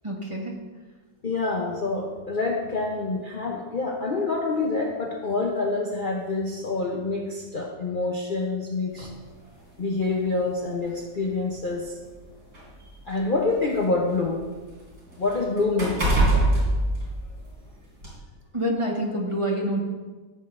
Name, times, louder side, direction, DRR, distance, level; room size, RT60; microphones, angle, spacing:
voice 1, 0.0-0.5 18.5-19.8, equal, 20° right, -2 dB, 1.3 m, -27 dB
voice 2, 1.2-9.1 9.8-11.9 13.1-14.4 15.2-16.4, left 3 dB, 40° left, -1 dB, 0.8 m, -27 dB
sound 1, 9.0-9.2 10.2-10.3 10.8-10.9 11.8-13.8 14.2-17.6 18.0-18.2, right 1 dB, 70° right, 3.9 m, -25 dB
14.5 x 7.6 x 2.6 m, 1.3 s
omnidirectional pair, 1.7 m